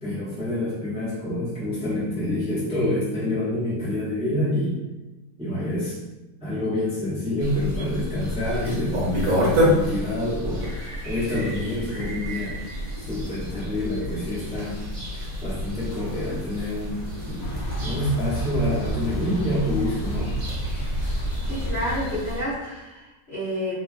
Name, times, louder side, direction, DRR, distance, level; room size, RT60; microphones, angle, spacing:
voice 1, 0.0-4.8 5.4-6.0 6.4-10.7 11.0-12.6 13.0-14.8 15.1-17.0 17.2-17.5 17.8-20.3, left 1 dB, 5° right, -11 dB, 0.8 m, -27 dB
sound 1, 7.4-22.4, equal, 65° right, 1.2 m, -29 dB
Thunder / Bicycle, 17.4-22.5, right 1 dB, 75° left, 1.1 m, -31 dB
voice 2, 21.4-23.7, equal, 50° left, -9 dB, 0.9 m, -30 dB
3.0 x 2.4 x 2.4 m, 1.1 s
omnidirectional pair, 1.6 m